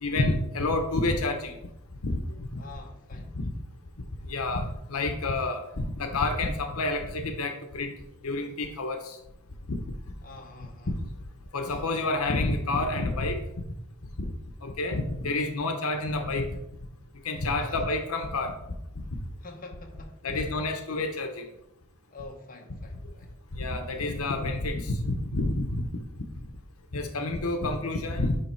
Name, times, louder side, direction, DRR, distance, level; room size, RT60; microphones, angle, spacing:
voice 1, 0.0-1.5 2.0-2.6 3.3-3.5 4.3-7.9 8.2-9.2 9.7-9.8 11.5-13.4 14.2-14.3 14.6-16.5 17.2-18.5 19.0-19.1 20.2-21.5 23.5-25.8 26.9-28.4, left 2 dB, 90° left, 5 dB, 0.9 m, -29 dB
voice 2, 2.6-3.4 10.2-10.9 17.6-17.8 19.4-20.5 22.1-23.3, left 3 dB, 40° left, 2 dB, 1.1 m, -46 dB
9.8 x 3.3 x 4.5 m, 0.83 s
head